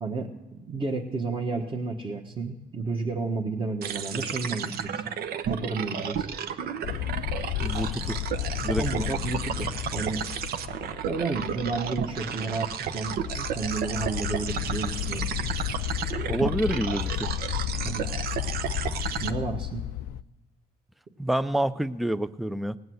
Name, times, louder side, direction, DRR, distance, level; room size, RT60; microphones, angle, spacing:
voice 1, 0.0-5.0 5.5-6.2 8.8-10.2 11.1-15.3 17.8-18.1 19.2-19.8, right 3 dB, 30° right, -2 dB, 1.5 m, -31 dB
sound 1, 3.8-19.3, right 8 dB, 65° right, 0.8 m, -33 dB
sound 2, 6.8-20.2, left 13 dB, 75° left, 0.4 m, -33 dB
voice 2, 7.6-8.2 8.6-8.8 16.3-17.3 21.2-22.8, right 1 dB, ahead, 15 dB, 0.4 m, -27 dB
19.0 x 8.0 x 7.9 m, 1.1 s
cardioid pair, 110°, 17 cm